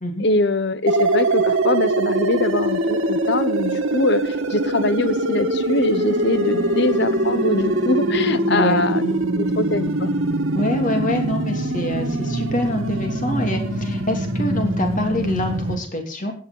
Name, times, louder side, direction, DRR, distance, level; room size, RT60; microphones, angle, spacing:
voice 1, 0.2-10.1, left 2 dB, 55° left, 15 dB, 1.0 m, -23 dB
sound 1, 0.9-15.8, right 2 dB, 80° right, 2.0 m, -22 dB
Bowed string instrument, 5.9-9.4, left 3 dB, 15° left, 3.2 m, -42 dB
voice 2, 8.5-8.8 10.5-16.3, left 1 dB, 40° left, 4 dB, 3.1 m, -25 dB
15.5 x 9.4 x 5.5 m, 0.42 s
head